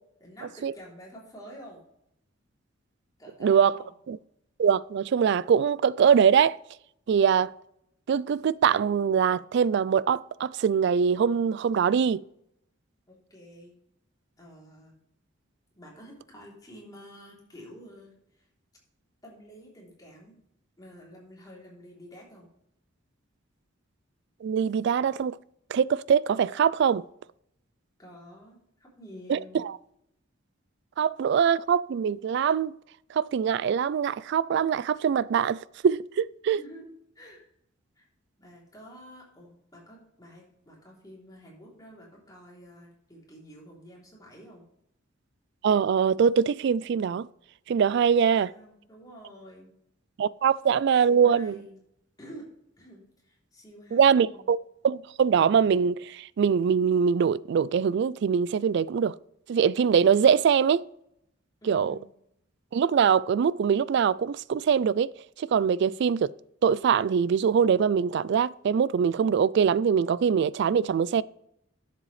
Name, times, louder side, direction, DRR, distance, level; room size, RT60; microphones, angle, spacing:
voice 1, 0.2-1.8 3.2-3.9 13.1-13.8 14.4-15.0 15.7-18.1 18.4-18.5 19.2-20.4 20.8-22.5 28.0-29.7 36.5-36.9 37.1-37.4 38.0-38.1 38.4-44.7 48.2-49.7 51.1-51.8 52.2-52.5 52.8-54.5 61.6-62.0, equal, 20° left, 3.2 m, -49 dB
voice 2, 3.4-3.7 4.1-4.2 4.6-6.6 7.1-7.5 8.1-12.2 24.4-25.4 25.7-27.0 29.3-29.7 31.0-32.8 33.1-36.6 45.6-47.3 47.7-48.5 50.2-51.6 53.9-54.6 54.8-59.2 59.5-60.8 61.7-61.9 62.7-65.1 65.4-66.3 66.6-71.2, right 7 dB, 60° right, 0.3 m, -23 dB
11.0 x 7.5 x 3.2 m
head